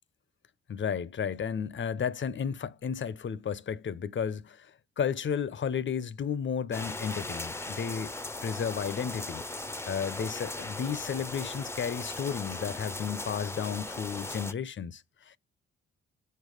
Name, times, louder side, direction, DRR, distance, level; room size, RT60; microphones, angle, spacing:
voice 1, 0.7-8.1 8.4-9.4 9.9-15.4, left 7 dB, 40° left, 0.7 m, -33 dB
sound 1, 6.7-14.5, left 2 dB, 10° left, 0.7 m, -38 dB
6.6 x 4.5 x 5.0 m
hypercardioid pair, 45°, 29 cm